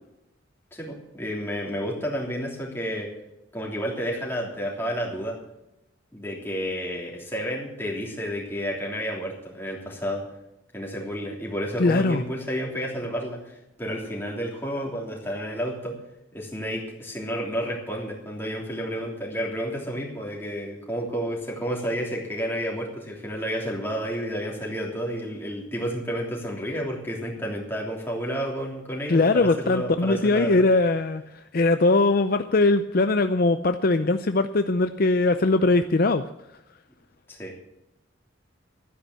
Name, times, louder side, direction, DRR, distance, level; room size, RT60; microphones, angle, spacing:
voice 1, 0.7-3.1 3.5-5.4 6.1-10.2 10.7-16.0 16.3-30.6 37.3-37.6, equal, 10° left, -2 dB, 3.2 m, -31 dB
voice 2, 11.8-12.2 29.1-36.2, left 2 dB, 50° left, 9 dB, 0.5 m, -21 dB
12.0 x 9.9 x 7.3 m, 0.88 s
head